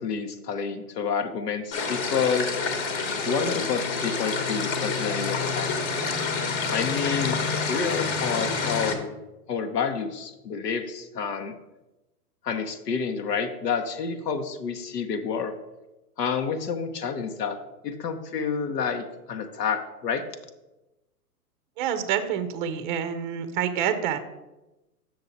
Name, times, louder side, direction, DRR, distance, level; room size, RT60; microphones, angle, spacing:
voice 1, 0.0-2.5 3.2-5.7 6.7-9.1 9.5-11.6 12.4-15.5 16.2-17.6 17.8-20.2, left 6 dB, 85° left, 6 dB, 1.0 m, -29 dB
sound 1, 1.7-8.9, left 4 dB, 35° left, 1.1 m, -28 dB
voice 2, 21.8-24.2, right 9 dB, 35° right, 10 dB, 0.5 m, -27 dB
7.1 x 6.4 x 4.0 m, 1.0 s
hypercardioid pair, 135°, 46 cm